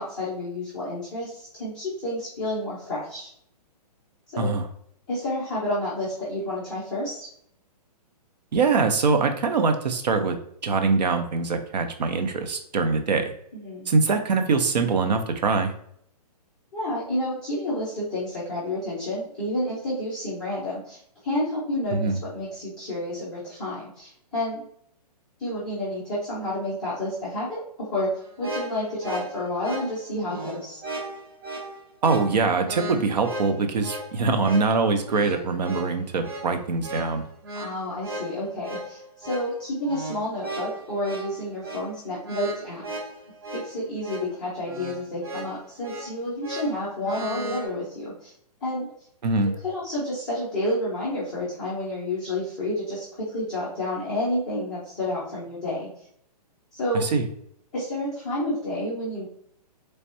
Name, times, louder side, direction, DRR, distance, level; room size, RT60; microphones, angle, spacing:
voice 1, 0.0-3.3 4.3-4.5 5.1-7.3 13.5-13.9 16.7-24.6 25.4-28.1 28.4-30.8 37.5-42.8 43.5-48.3 48.6-48.9 49.6-55.9 56.7-57.1 57.7-59.2, left 1 dB, 5° left, -11 dB, 0.3 m, -30 dB
voice 2, 8.5-10.4 10.6-13.3 13.9-15.7 21.9-22.2 32.0-37.2 49.2-49.5 56.9-57.2, right 4 dB, 80° right, 6 dB, 0.8 m, -23 dB
sound 1, 28.2-47.7, right 1 dB, 35° right, 0.7 m, -37 dB
3.3 x 3.2 x 2.8 m, 0.68 s
hypercardioid pair, 170°, 21 cm